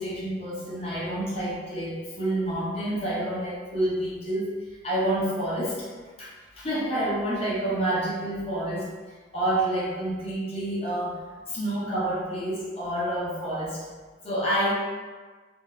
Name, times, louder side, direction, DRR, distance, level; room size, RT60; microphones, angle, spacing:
voice 1, 0.0-4.5 4.8-5.9 6.2-8.9 9.3-11.2 11.5-13.8 14.2-14.7, right 1 dB, 35° left, -7 dB, 0.7 m, -28 dB
3.7 x 2.1 x 2.3 m, 1.4 s
head